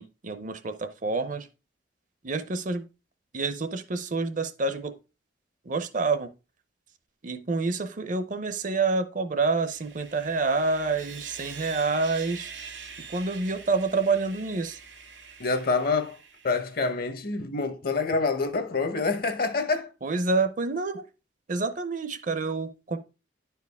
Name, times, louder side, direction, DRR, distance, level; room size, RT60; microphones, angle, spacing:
voice 1, 0.0-1.5 2.2-2.8 3.3-4.9 5.6-6.3 7.2-12.5 13.0-14.8 20.0-21.0 21.5-23.0, right 3 dB, 45° right, 0.6 m, -28 dB
Sawing, 9.5-16.9, right 5 dB, 85° right, 1.9 m, -45 dB
voice 2, 15.4-16.2 16.4-19.9, left 4 dB, 50° left, 0.9 m, -26 dB
10.0 x 4.6 x 3.4 m
head